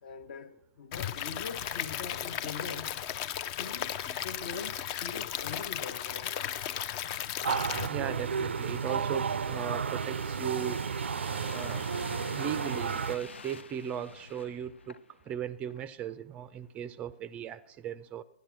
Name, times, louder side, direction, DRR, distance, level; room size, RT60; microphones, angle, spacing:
voice 1, 0.0-3.0 3.4-6.5, left 5 dB, 50° left, 1.0 m, -43 dB
Stream / Liquid, 0.9-7.9, left 10 dB, 35° left, 0.6 m, -35 dB
sound 1, 7.0-15.4 15.7-15.8, left 5 dB, 80° left, 0.5 m, -48 dB
sound 2, 7.4-13.2, right 6 dB, 75° right, 0.4 m, -32 dB
voice 2, 7.9-10.8 11.5-11.8 12.4-14.9 15.3-18.2, right 9 dB, 20° right, 0.4 m, -37 dB
14.5 x 10.5 x 6.1 m
hypercardioid pair, 125°, 6 cm